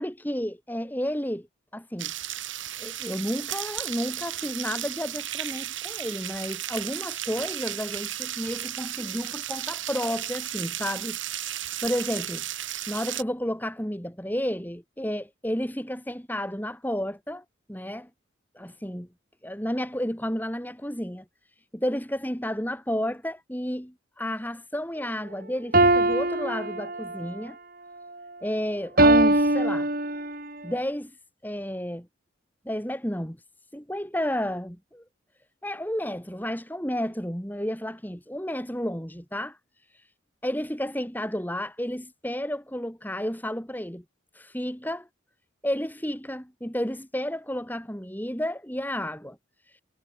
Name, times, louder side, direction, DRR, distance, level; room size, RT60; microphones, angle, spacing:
voice 1, 0.0-1.5 1.7-2.1 2.8-11.2 11.8-12.4 12.9-17.4 17.7-18.1 18.5-19.1 19.4-21.2 21.7-27.6 28.4-29.9 30.6-31.1 31.4-32.1 32.6-33.4 33.7-35.0 35.6-39.6 40.4-44.0 44.3-45.1 45.6-49.4, equal, 10° left, 5.1 m, -31 dB
sound 1, 2.0-13.2, right 12 dB, 75° right, 6.4 m, -34 dB
sound 2, 25.7-27.3 29.0-30.5, right 1 dB, 45° right, 8.0 m, -21 dB
head